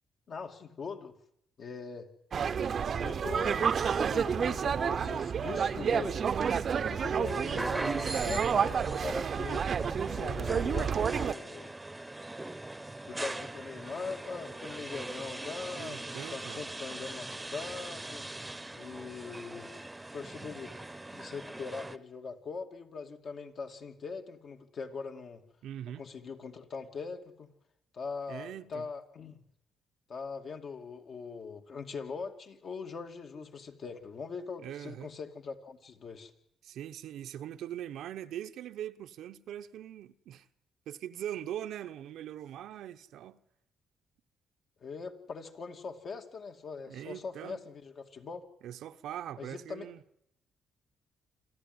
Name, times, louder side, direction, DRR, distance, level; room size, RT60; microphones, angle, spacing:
voice 1, 0.3-1.2 1.6-2.1 3.0-6.2 6.9-9.9 10.1-11.7 13.0-18.3 18.7-19.8 20.1-20.7 21.1-25.4 26.0-27.5 27.9-29.4 30.1-36.3 44.8-48.4 49.4-49.9, left 5 dB, 55° left, 2.4 m, -42 dB
sound 1, 2.3-11.3, right 7 dB, 50° right, 0.8 m, -30 dB
sound 2, 7.2-22.0, right 2 dB, 10° right, 1.0 m, -40 dB
voice 2, 15.8-16.6 25.6-26.0 28.3-28.9 34.6-35.1 36.6-40.5 40.9-43.4 46.9-47.6 48.6-50.0, right 11 dB, 80° right, 0.9 m, -41 dB
27.0 x 13.5 x 9.6 m
cardioid pair, 90°, 0 cm